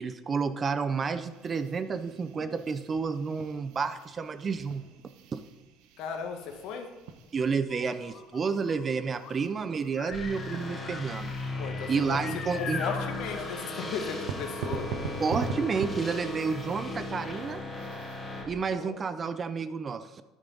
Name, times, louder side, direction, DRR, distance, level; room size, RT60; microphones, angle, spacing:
voice 1, 0.0-4.8 5.3-5.4 7.3-11.3 11.9-12.8 15.2-17.6 18.5-20.2, right 5 dB, 25° right, 12 dB, 0.5 m, -30 dB
sound 1, 1.1-18.4, right 5 dB, 80° right, 0.9 m, -43 dB
voice 2, 6.0-6.9 11.6-12.2 12.5-14.9 18.7-19.0, left 6 dB, 70° left, 4 dB, 1.5 m, -36 dB
sound 2, 7.7-15.3, left 5 dB, 45° left, 1.3 m, -43 dB
sound 3, 10.1-18.4, left 2 dB, 15° left, 2.8 m, -37 dB
9.9 x 8.4 x 3.8 m, 1.2 s
cardioid pair, 140°, 0 cm